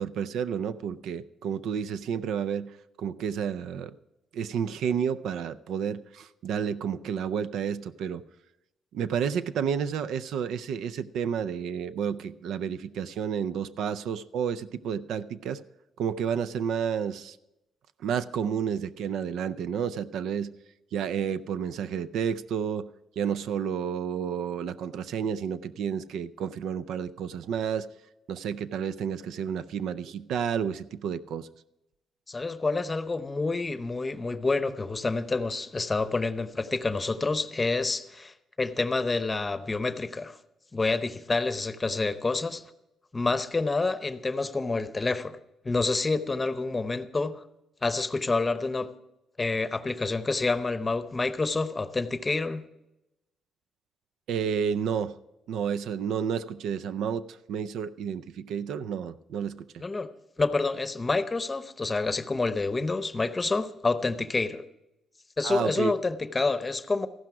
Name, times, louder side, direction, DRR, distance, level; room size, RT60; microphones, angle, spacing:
voice 1, 0.0-3.9 4.3-8.2 8.9-15.6 16.0-17.4 18.0-20.5 20.9-22.9 23.2-27.9 28.3-31.5 54.3-55.2 55.5-59.8 65.4-65.9, right 7 dB, 80° right, 13 dB, 0.5 m, -31 dB
voice 2, 32.3-40.4 40.7-42.6 43.1-45.4 45.6-47.4 47.8-48.9 49.4-52.6 59.8-60.1 60.4-64.6 65.4-67.1, left 3 dB, 25° left, 12 dB, 0.8 m, -28 dB
14.5 x 12.0 x 4.7 m, 0.91 s
cardioid pair, 90°, 0 cm